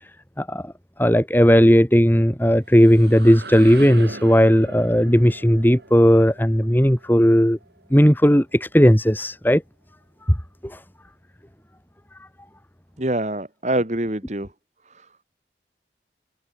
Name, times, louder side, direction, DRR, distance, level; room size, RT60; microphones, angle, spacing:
voice 1, 0.4-0.7 1.0-7.6 7.9-9.6 10.3-10.4 10.6-10.8, equal, 10° left, 2.3 m, -16 dB
sound 1, 2.4-8.2, right 2 dB, 75° right, 7.5 m, -39 dB
voice 2, 13.0-14.5 14.9-15.1, right 1 dB, 40° right, 1.9 m, -25 dB
head